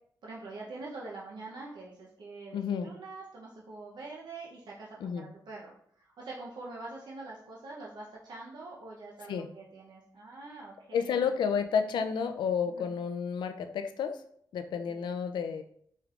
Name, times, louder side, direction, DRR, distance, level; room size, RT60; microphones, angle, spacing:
voice 1, 0.2-5.7 6.0-11.2 12.7-12.9 14.9-15.0, right 3 dB, 75° right, -4 dB, 0.7 m, -45 dB
voice 2, 2.5-2.9 5.0-5.3 9.3-9.5 10.9-14.2 14.5-15.6, left 6 dB, 90° left, 8 dB, 0.4 m, -31 dB
5.0 x 3.2 x 2.4 m, 0.66 s
cardioid pair, 80°, 8 cm